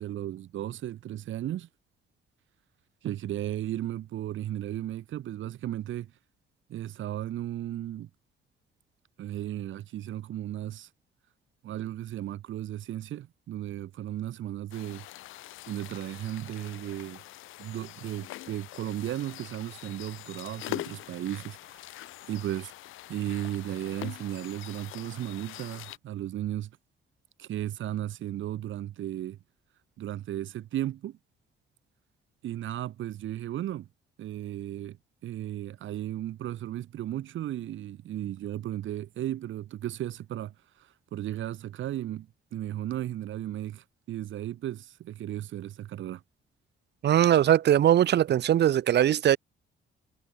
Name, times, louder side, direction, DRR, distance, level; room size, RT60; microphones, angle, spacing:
voice 1, 0.0-1.7 3.0-6.1 6.7-8.1 9.2-10.9 11.6-15.0 15.7-17.2 17.6-22.7 23.1-26.7 27.4-29.4 30.0-31.2 32.4-33.9 34.2-35.0 35.2-46.2, right 12 dB, 75° right, 3.8 m, -35 dB
sound 1, 14.7-26.0, left 16 dB, 90° left, 2.5 m, -43 dB
voice 2, 47.0-49.4, right 11 dB, 60° right, 0.8 m, -21 dB
cardioid pair, 90°, 20 cm